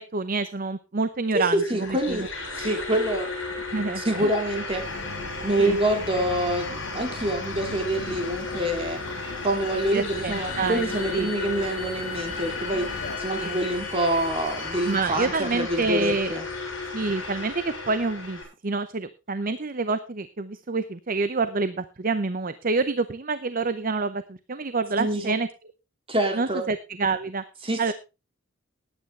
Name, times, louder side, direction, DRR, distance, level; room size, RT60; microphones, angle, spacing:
voice 1, 0.0-2.3 3.7-4.3 5.6-5.8 9.9-11.3 13.3-13.6 14.8-16.3 16.9-25.5 26.3-27.4 27.8-27.9, right 3 dB, 40° right, 12 dB, 0.7 m, -27 dB
voice 2, 1.3-2.2 2.5-3.3 4.0-4.8 5.4-9.0 9.4-12.9 13.2-16.5 25.0-25.3 26.1-26.7 27.6-27.9, right 1 dB, 25° right, 4 dB, 2.9 m, -26 dB
sound 1, 1.4-18.4, left 3 dB, 65° left, 6.6 m, -35 dB
sound 2, 4.7-13.2, left 3 dB, 90° left, 1.7 m, -40 dB
Bowed string instrument, 9.4-15.1, left 7 dB, 35° left, 5.4 m, -39 dB
19.5 x 9.0 x 3.3 m, 0.29 s
head